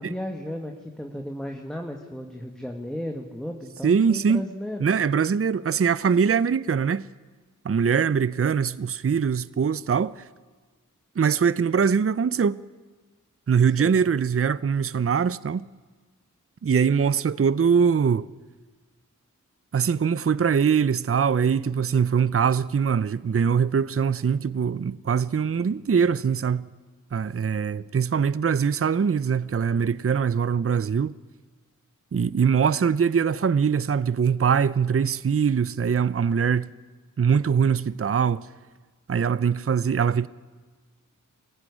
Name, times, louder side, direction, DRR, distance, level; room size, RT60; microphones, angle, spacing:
voice 1, 0.0-4.9 13.8-14.0, equal, ahead, 2.2 m, -34 dB
voice 2, 3.8-4.4 4.8-7.1 7.6-10.3 11.2-12.6 13.5-15.6 16.6-18.3 19.7-26.7 27.1-31.1 32.1-36.7 37.2-38.5 39.1-40.3, right 6 dB, 45° right, 0.6 m, -22 dB
23.0 x 16.0 x 9.9 m
cardioid pair, 50°, 32 cm